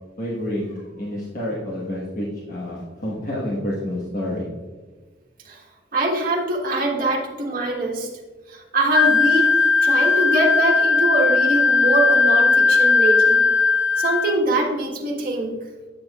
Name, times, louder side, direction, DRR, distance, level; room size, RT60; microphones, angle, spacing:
voice 1, 0.2-4.4, left 1 dB, 50° left, -5 dB, 1.3 m, -29 dB
voice 2, 5.9-8.1 8.5-9.5 9.8-13.4 14.0-15.6, right 2 dB, 50° right, 0 dB, 1.4 m, -23 dB
Wind instrument woodwind instrument, 8.9-14.4, left 4 dB, 90° left, 0.5 m, -17 dB
8.6 x 7.2 x 2.4 m, 1.4 s
head